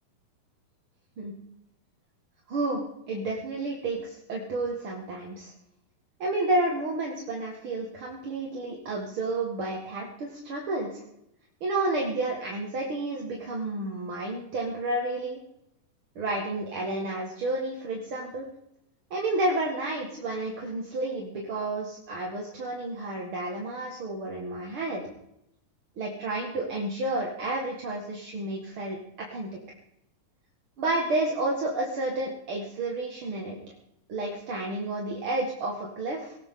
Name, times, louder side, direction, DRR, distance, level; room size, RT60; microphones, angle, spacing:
voice 1, 2.5-5.5 6.2-11.0 11.6-15.4 16.2-18.5 19.1-25.1 26.0-29.5 30.8-33.6 34.1-36.4, right 2 dB, 45° right, -1 dB, 2.2 m, -31 dB
19.0 x 18.5 x 3.8 m, 0.82 s
omnidirectional pair, 4.1 m